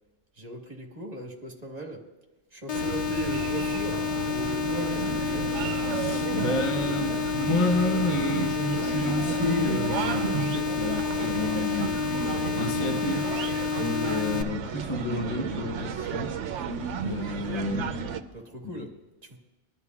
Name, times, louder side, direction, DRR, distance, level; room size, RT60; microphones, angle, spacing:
voice 1, 0.3-2.1 2.5-5.5 18.3-19.4, right 1 dB, 35° right, 1 dB, 1.4 m, -39 dB
sound 1, 2.7-14.4, left 7 dB, 75° left, 0.3 m, -30 dB
sound 2, 2.7-18.2, right 6 dB, 70° right, 1.0 m, -33 dB
Bowed string instrument, 3.4-8.2, right 11 dB, 55° right, 0.4 m, -43 dB
voice 2, 5.9-11.9 12.6-13.3 13.8-16.4 17.0-17.9, left 2 dB, 30° left, 3 dB, 0.8 m, -30 dB
23.0 x 11.0 x 2.4 m, 1.1 s
omnidirectional pair, 1.3 m